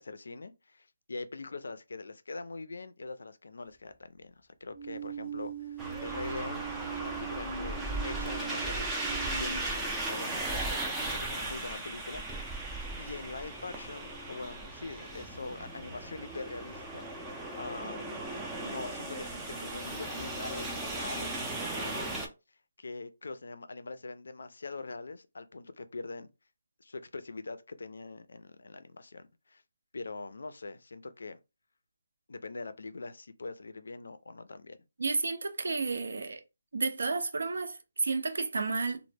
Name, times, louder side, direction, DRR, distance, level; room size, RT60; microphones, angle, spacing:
voice 1, 0.0-4.3 4.6-6.6 6.9-7.8 8.0-8.9 9.4-12.5 13.0-18.3 18.6-21.3 21.8-22.3 22.8-26.3 26.8-29.6 29.9-31.4 32.3-34.8, left 3 dB, 75° left, 0.3 m, -43 dB
sound 1, 4.7-9.6, right 7 dB, 35° right, 0.7 m, -40 dB
sound 2, 5.8-22.3, right 2 dB, 10° right, 0.3 m, -37 dB
voice 2, 35.0-36.4 36.7-39.0, right 4 dB, 75° right, 0.4 m, -31 dB
2.0 x 2.0 x 3.2 m
hypercardioid pair, 165°, 0 cm